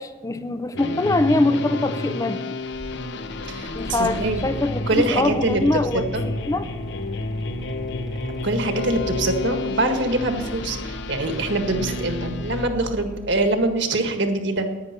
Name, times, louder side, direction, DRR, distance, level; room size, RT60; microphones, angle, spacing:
voice 1, 0.0-2.6 3.7-6.0 6.5-6.7, left 2 dB, 15° left, 11 dB, 0.4 m, -23 dB
sound 1, 0.7-12.7, left 2 dB, 65° left, 0.9 m, -30 dB
Mechanical fan, 2.2-13.5, equal, ahead, 1.2 m, -39 dB
voice 2, 3.5-4.4 4.9-5.8 6.1-6.2 8.4-14.7, right 2 dB, 65° right, 5 dB, 1.7 m, -24 dB
10.5 x 9.7 x 9.7 m, 1.3 s
head